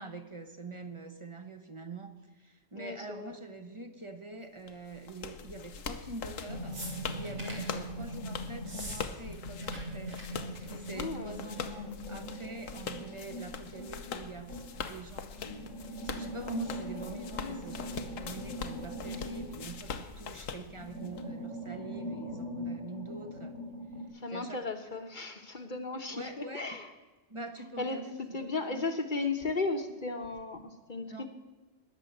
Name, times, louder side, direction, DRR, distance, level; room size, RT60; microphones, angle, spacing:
voice 1, 0.0-6.8 7.1-10.2 10.7-23.5 24.3-24.6 26.1-26.8 27.3-28.8 31.1-31.3, right 2 dB, 25° right, 8 dB, 1.0 m, -45 dB
voice 2, 2.7-3.3 10.9-11.3 17.4-17.8 24.1-26.9 27.8-31.3, left 3 dB, 40° left, 7 dB, 1.2 m, -35 dB
sound 1, 4.7-21.2, left 6 dB, 80° left, 1.3 m, -42 dB
sound 2, 6.5-8.9 9.3-14.9 15.3-20.4 20.7-24.1, equal, 55° right, 7.1 m, -41 dB
sound 3, 6.7-7.7 8.6-9.0 9.3-9.8 10.1-10.2 10.5-10.8 11.8-11.9, right 1 dB, 85° right, 3.8 m, -43 dB
20.0 x 6.9 x 7.8 m, 1.2 s
omnidirectional pair, 1.3 m